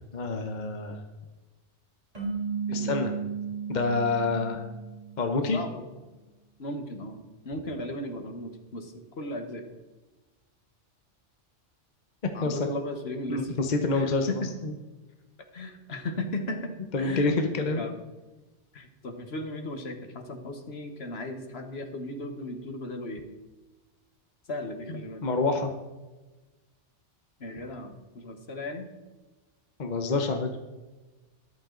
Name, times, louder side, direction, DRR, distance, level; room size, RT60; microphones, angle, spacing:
voice 1, 0.1-1.0 2.7-3.1 3.7-4.6 5.2-5.6 12.4-12.7 13.3-14.7 16.9-17.8 25.2-25.7 29.8-30.5, left 3 dB, 40° left, 5 dB, 1.1 m, -27 dB
sound 1, 2.1-5.5, right 6 dB, 30° right, 3.4 m, -34 dB
voice 2, 2.7-3.0 5.3-5.8 6.6-7.2 7.4-9.6 12.3-13.6 13.9-14.5 15.5-17.3 17.6-18.0 18.7-23.2 24.5-25.3 27.4-28.9, left 1 dB, 60° left, 6 dB, 1.6 m, -36 dB
13.0 x 11.0 x 3.9 m, 1.2 s
omnidirectional pair, 1.2 m